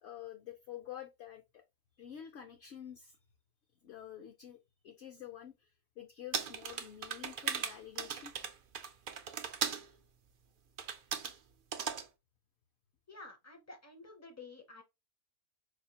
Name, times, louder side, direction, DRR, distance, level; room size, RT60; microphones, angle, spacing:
voice 1, 0.0-1.6 2.0-3.2 3.8-5.7 6.0-8.3, left 10 dB, 60° left, 0.7 m, -48 dB
sound 1, 6.3-9.9 10.8-11.4 11.7-12.1, right 7 dB, 75° right, 0.4 m, -37 dB
voice 2, 13.1-14.8, left 3 dB, 25° left, 0.3 m, -51 dB
5.0 x 2.4 x 2.8 m
omnidirectional pair, 1.6 m